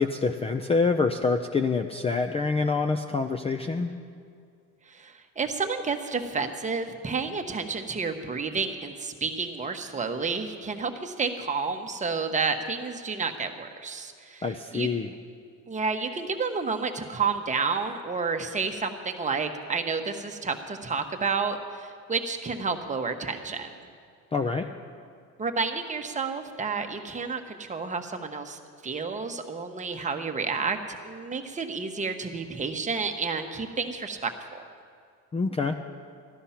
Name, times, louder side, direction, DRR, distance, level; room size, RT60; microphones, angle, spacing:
voice 1, 0.0-3.9 14.4-15.1 24.3-24.7 35.3-35.8, left 4 dB, 15° left, 6 dB, 0.5 m, -26 dB
voice 2, 4.9-14.9 15.7-23.8 25.4-34.6, right 4 dB, 20° right, 5 dB, 1.1 m, -30 dB
13.5 x 13.0 x 5.8 m, 2.3 s
cardioid pair, 110°, 35 cm